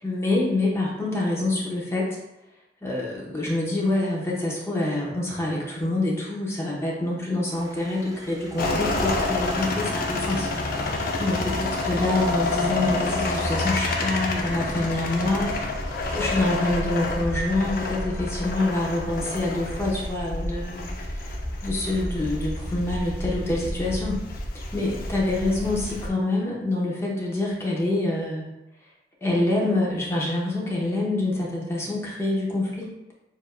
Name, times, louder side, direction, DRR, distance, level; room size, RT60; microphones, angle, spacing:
voice 1, 0.0-2.2 2.8-10.5 10.9-15.5 16.1-20.9 21.1-21.3 21.6-24.2 24.7-28.4 29.2-32.9, left 2 dB, 15° left, -4 dB, 0.9 m, -26 dB
sound 1, 7.5-24.8 25.1-26.0, equal, 20° right, 0.4 m, -40 dB
sound 2, 8.6-26.1, left 2 dB, 55° left, 0.6 m, -29 dB
6.9 x 2.6 x 2.2 m, 0.93 s
head